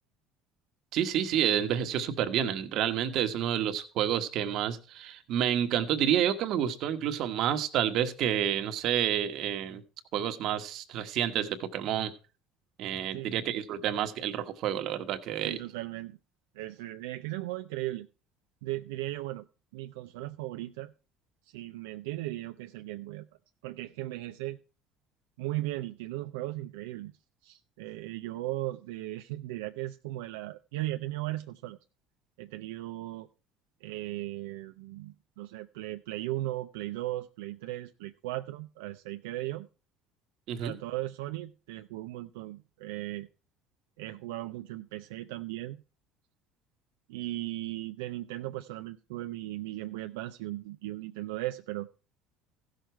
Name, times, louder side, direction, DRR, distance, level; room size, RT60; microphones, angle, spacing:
voice 1, 0.9-9.8 10.1-12.1 12.8-15.6 40.5-40.7, right 10 dB, 60° right, 9 dB, 1.3 m, -29 dB
voice 2, 15.4-16.2 16.5-18.1 18.6-19.4 19.7-20.9 21.5-23.3 23.6-24.6 25.4-27.1 27.4-31.8 32.4-33.3 33.8-39.7 40.6-43.3 44.0-45.8 47.1-51.9, right 16 dB, 90° right, 7 dB, 0.4 m, -37 dB
15.0 x 6.5 x 4.5 m, 0.34 s
supercardioid pair, 100°, 0 cm